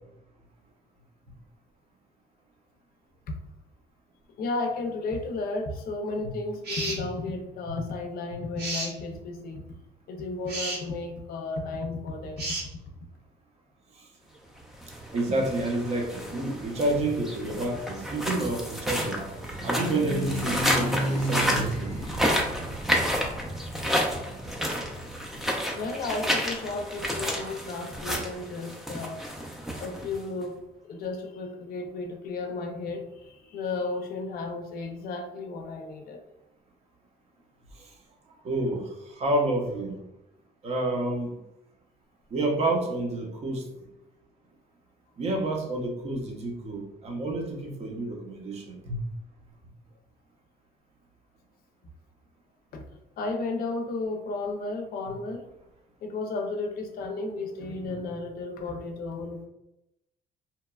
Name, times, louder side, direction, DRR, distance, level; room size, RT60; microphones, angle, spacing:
voice 1, 4.4-9.6 10.1-12.6 25.7-29.2 29.8-36.2 52.7-52.9 53.2-55.5 56.0-59.5, left 3 dB, 60° left, 3 dB, 0.5 m, -33 dB
sound 1, 6.6-7.0 8.6-8.9 10.5-10.8 12.4-12.7, right 2 dB, 70° right, 1.2 m, -31 dB
sound 2, 14.7-30.4, equal, ahead, 0.4 m, -30 dB
voice 2, 15.1-19.2 19.6-22.2 38.4-40.0 40.6-41.4 42.3-43.7 45.2-49.0, right 2 dB, 40° right, 1 dB, 0.7 m, -29 dB
sound 3, 17.8-25.6, right 1 dB, 20° left, 0.9 m, -35 dB
2.9 x 2.2 x 2.3 m, 0.89 s
cardioid pair, 110°, 17 cm